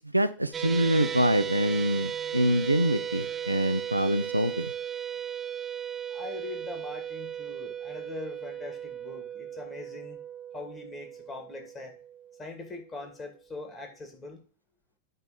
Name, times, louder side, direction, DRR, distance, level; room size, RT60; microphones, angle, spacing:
voice 1, 0.1-4.7, right 1 dB, 85° right, 11 dB, 0.5 m, -25 dB
sound 1, 0.5-12.9, right 9 dB, 20° right, 0.6 m, -36 dB
voice 2, 6.1-10.2 10.5-12.0 12.4-14.4, left 3 dB, 20° left, 4 dB, 2.2 m, -42 dB
8.9 x 3.3 x 5.9 m, 0.39 s
figure-of-eight pair, 90°, 0 cm